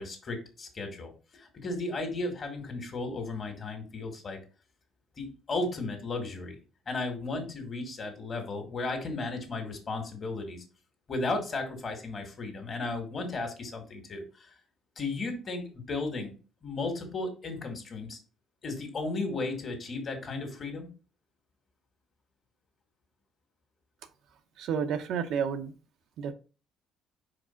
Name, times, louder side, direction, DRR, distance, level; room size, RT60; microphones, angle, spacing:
voice 1, 0.0-4.4 5.2-6.6 6.9-10.6 11.1-14.5 15.0-16.3 16.6-18.2 18.6-20.9, left 3 dB, 40° left, 4 dB, 2.0 m, -35 dB
voice 2, 24.6-25.7 26.2-26.3, right 7 dB, 70° right, 7 dB, 0.9 m, -30 dB
5.0 x 4.7 x 4.4 m, 0.35 s
cardioid pair, 115°, 0 cm